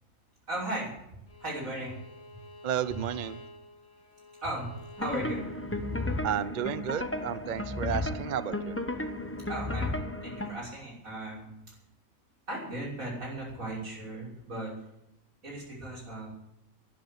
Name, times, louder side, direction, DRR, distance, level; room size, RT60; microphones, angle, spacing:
voice 1, 0.5-0.9 1.4-2.0 2.3-2.4 2.9-3.0 4.4-5.4 5.7-5.8 9.5-11.7 12.5-14.7 15.4-16.3, right 1 dB, 80° right, -3 dB, 6.3 m, -37 dB
Bowed string instrument, 1.3-6.3, left 1 dB, 70° left, 2.0 m, -50 dB
voice 2, 2.6-3.4 6.2-8.8, right 9 dB, 50° right, 14 dB, 0.6 m, -32 dB
sound 1, 5.0-10.5, left 2 dB, 10° left, 0.9 m, -34 dB
12.5 x 11.0 x 8.5 m, 0.83 s
omnidirectional pair, 1.4 m